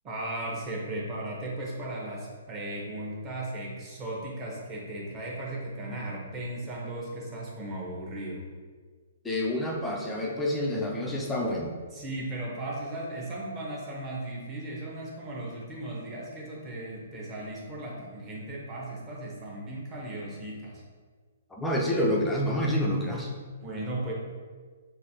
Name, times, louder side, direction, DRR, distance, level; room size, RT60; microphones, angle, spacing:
voice 1, 0.0-8.4 11.9-20.8 23.6-24.1, right 1 dB, 20° right, -4 dB, 1.1 m, -36 dB
voice 2, 9.2-11.8 21.5-23.3, left 1 dB, 5° left, -2 dB, 0.5 m, -28 dB
6.4 x 2.6 x 2.8 m, 1.5 s
hypercardioid pair, 155°, 0 cm